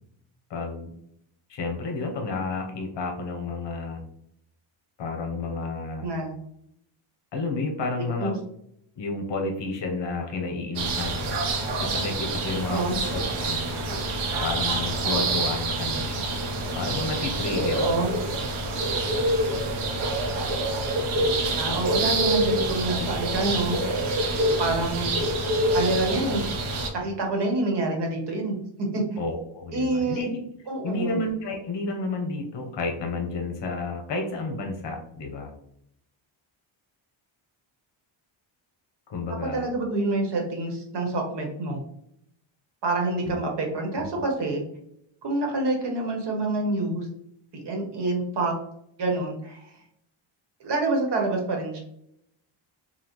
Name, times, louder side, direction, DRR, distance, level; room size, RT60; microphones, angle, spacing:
voice 1, 0.5-0.9 1.5-4.0 5.0-6.1 7.3-8.4 9.0-11.4 11.8-12.8 13.1-13.6 14.4-16.2 16.7-17.9 22.0-22.1 29.2-30.4 30.8-35.5 39.1-39.7 43.3-43.4 43.9-44.0, left 3 dB, 60° left, 3 dB, 1.0 m, -31 dB
voice 2, 6.0-6.3 8.0-8.3 12.6-13.0 17.7-18.1 21.5-23.8 24.6-25.2 25.7-26.4 26.9-28.5 28.9-29.0 29.7-30.2 30.7-31.2 39.5-41.8 42.8-44.6 45.2-47.1 47.5-48.5 49.0-49.6 50.6-51.8, right 2 dB, 55° right, 1 dB, 1.2 m, -27 dB
sound 1, 10.8-26.9, right 2 dB, 75° right, 0.9 m, -26 dB
5.6 x 2.3 x 3.0 m, 0.73 s
wide cardioid pair, 170°, 50 cm